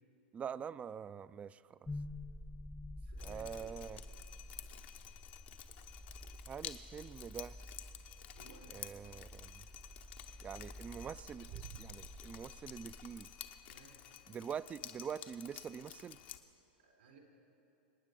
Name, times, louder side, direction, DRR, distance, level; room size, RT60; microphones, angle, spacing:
voice 1, 0.3-1.8 3.2-4.0 6.5-7.6 8.7-9.6 10.4-13.3 14.3-16.2, right 7 dB, 20° right, 17 dB, 0.4 m, -45 dB
sound 1, 1.9-13.9, left 1 dB, 10° left, 0.7 m, -50 dB
voice 2, 3.0-3.8 8.3-8.7 13.7-14.0 16.8-17.2, right 4 dB, 80° right, 1 dB, 4.2 m, -60 dB
Drip, 3.2-16.4, left 11 dB, 65° left, 1.0 m, -52 dB
sound 2, 4.1-4.3 4.6-5.3 5.7-7.5 9.7-10.0 10.7-10.8 11.0-12.5, right 12 dB, 55° right, 0.9 m, -55 dB
26.0 x 9.6 x 5.3 m, 2.6 s
hypercardioid pair, 110°, 6 cm